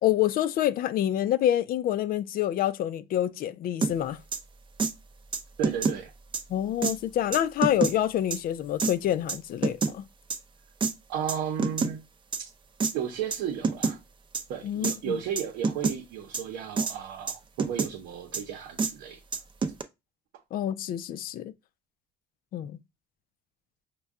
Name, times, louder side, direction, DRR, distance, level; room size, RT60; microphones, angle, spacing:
voice 1, 0.0-4.2 6.5-10.0 14.6-15.2 20.5-21.5 22.5-22.7, left 11 dB, 60° left, 0.4 m, -27 dB
sound 1, 3.8-3.9 4.3-4.4 4.8-4.9 5.3-6.0 6.3-6.4 6.8-6.9 7.3-7.9 8.3-8.4 8.8-8.9 9.3-9.9 10.3-10.4 10.8-10.9 11.3-11.9 12.3-12.4 12.8-12.9 13.3-13.4 13.6-14.0 14.3-14.4 14.8-15.0 15.4-16.0 16.3-16.4 16.8-16.9 17.3-17.9 18.3-18.4 18.8-18.9 19.3-19.8, right 4 dB, 30° right, 0.5 m, -27 dB
voice 2, 5.6-6.1 11.1-12.0 12.9-14.0 14.5-17.3 17.6-19.2, right 8 dB, 90° right, 0.8 m, -33 dB
5.3 x 2.2 x 3.5 m
cardioid pair, 110°, 17 cm